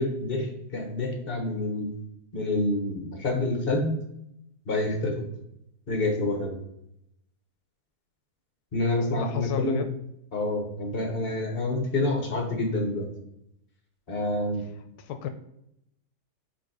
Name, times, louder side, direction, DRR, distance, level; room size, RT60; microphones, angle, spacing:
voice 1, 0.0-1.9 2.3-3.9 4.7-5.2 5.9-6.6 8.7-9.8 10.3-13.1 14.1-14.6, left 2 dB, 40° left, 3 dB, 1.5 m, -27 dB
voice 2, 9.2-9.9 15.0-15.3, left 9 dB, 85° left, 9 dB, 1.1 m, -32 dB
5.1 x 4.1 x 4.7 m, 0.78 s
omnidirectional pair, 1.6 m